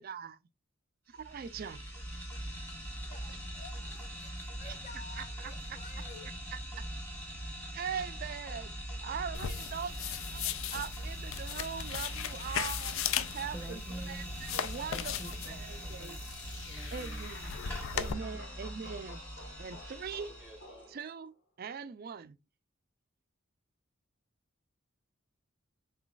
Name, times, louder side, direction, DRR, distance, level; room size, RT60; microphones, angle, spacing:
voice 1, 0.0-0.4 1.2-1.9 3.3-3.4 4.6-4.8 5.2-5.8 6.5-6.6 7.7-8.7 9.0-13.0 13.3-15.1 15.5-16.2 16.9-17.5 17.9-19.2 19.6-20.3 20.9-22.4, right 7 dB, 45° right, 0.4 m, -41 dB
sound 1, 1.1-20.8, equal, 10° left, 1.6 m, -42 dB
voice 2, 3.1-6.3, left 4 dB, 35° left, 0.6 m, -52 dB
sound 2, 9.3-18.1, left 9 dB, 80° left, 0.4 m, -38 dB
voice 3, 13.5-14.3 14.9-18.7 20.2-21.0, right 1 dB, 5° right, 0.7 m, -50 dB
sound 3, 16.0-21.3, left 3 dB, 60° left, 1.2 m, -51 dB
3.9 x 3.8 x 2.4 m
head